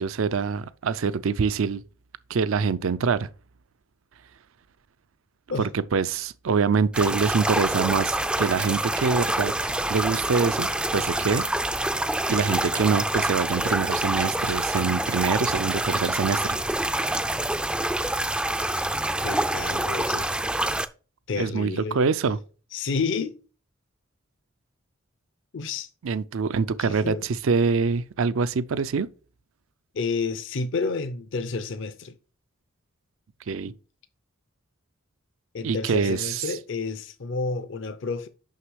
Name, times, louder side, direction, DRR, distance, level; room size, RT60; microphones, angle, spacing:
voice 1, 0.0-1.8 2.3-3.3 5.6-11.4 11.8-12.0 12.3-16.6 21.4-22.4 26.0-29.1 33.5-33.7 35.6-36.6, right 5 dB, 70° right, 0.5 m, -25 dB
sound 1, 6.9-20.9, right 1 dB, 5° right, 0.3 m, -26 dB
voice 2, 19.2-20.3 21.3-22.0 22.7-23.3 25.5-25.9 26.8-27.2 29.9-32.2 35.5-38.3, left 4 dB, 60° left, 0.6 m, -30 dB
6.5 x 5.9 x 4.7 m
head